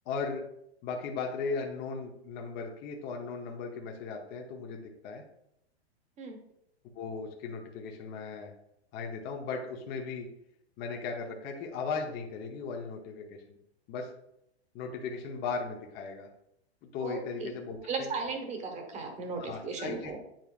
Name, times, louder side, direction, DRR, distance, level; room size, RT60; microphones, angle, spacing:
voice 1, 0.1-0.4 0.8-5.2 6.9-8.5 8.9-10.3 10.8-13.6 13.9-14.1 14.7-16.3 16.9-18.1 19.4-20.3, left 4 dB, 30° left, 1 dB, 0.9 m, -37 dB
voice 2, 17.0-17.5 17.8-20.2, right 4 dB, 20° right, 4 dB, 1.2 m, -36 dB
9.0 x 4.5 x 2.4 m, 0.78 s
hypercardioid pair, 135°, 33 cm